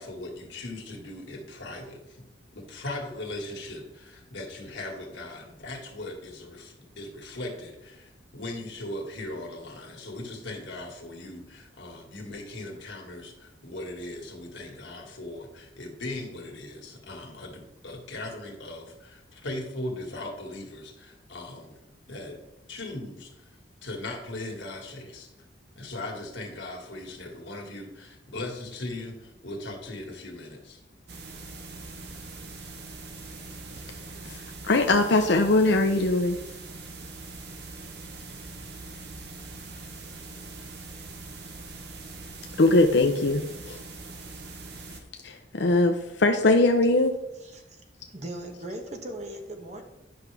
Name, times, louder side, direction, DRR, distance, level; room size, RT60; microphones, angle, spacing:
voice 1, 0.0-2.2 2.5-21.8 22.1-22.4 22.7-23.5 23.8-25.3 25.8-30.8, left 2 dB, 80° left, 1.9 m, -39 dB
sound 1, 31.1-45.0, right 3 dB, 60° right, 0.9 m, -42 dB
voice 2, 34.2-36.4 42.6-43.8 45.2-47.1, left 2 dB, 65° left, 0.6 m, -21 dB
voice 3, 47.4-47.8 48.1-49.8, right 1 dB, 40° right, 1.1 m, -38 dB
10.5 x 5.9 x 3.4 m
head